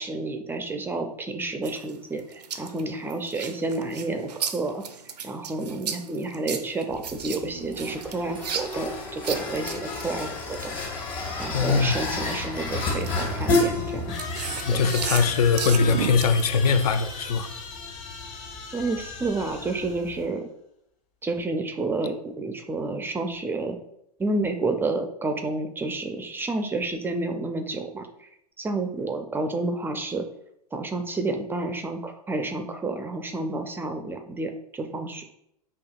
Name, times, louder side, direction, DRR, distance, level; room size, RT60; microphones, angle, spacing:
voice 1, 0.0-4.8 5.2-10.3 10.6-10.8 11.4-14.2 14.7-14.9 18.7-20.5 21.2-23.8 24.2-28.3 28.6-30.2 30.7-35.3, right 2 dB, 10° right, 6 dB, 0.3 m, -30 dB
sound 1, 1.6-11.5 11.9-17.0, right 7 dB, 80° right, 0.4 m, -35 dB
sound 2, 6.9-20.3, left 2 dB, 55° left, 1.5 m, -32 dB
voice 2, 11.5-12.0 14.6-17.5, left 5 dB, 70° left, 9 dB, 0.4 m, -21 dB
sound 3, 14.1-20.2, left 5 dB, 35° left, 0.9 m, -38 dB
5.4 x 2.7 x 2.3 m, 0.76 s
hypercardioid pair, 95°, 21 cm